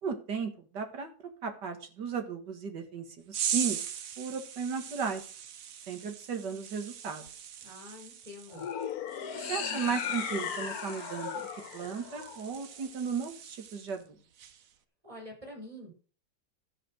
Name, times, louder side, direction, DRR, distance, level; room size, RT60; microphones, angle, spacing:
voice 1, 0.0-1.1 1.4-3.8 4.2-5.2 5.9-7.3 9.3-11.5 11.7-14.2, right 6 dB, 80° right, 5 dB, 2.4 m, -35 dB
sound 1, 3.3-14.0 14.4-14.7, right 9 dB, 60° right, 1.1 m, -40 dB
voice 2, 7.6-8.6 15.0-15.9, left 1 dB, 20° right, 0 dB, 5.0 m, -46 dB
sound 2, 8.5-12.9, left 8 dB, 65° left, 1.4 m, -37 dB
13.5 x 5.2 x 6.4 m, 0.40 s
omnidirectional pair, 1.8 m